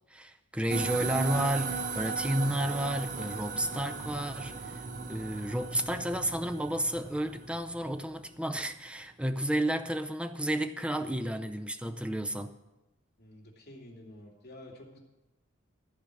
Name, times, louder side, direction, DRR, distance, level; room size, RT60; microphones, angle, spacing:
voice 1, 0.1-4.8 5.1-12.5, right 1 dB, 5° right, 0.5 m, -32 dB
sound 1, 0.7-8.3, right 5 dB, 40° right, 0.7 m, -37 dB
voice 2, 13.2-15.0, left 1 dB, 50° left, 2.8 m, -50 dB
14.0 x 5.0 x 8.3 m
head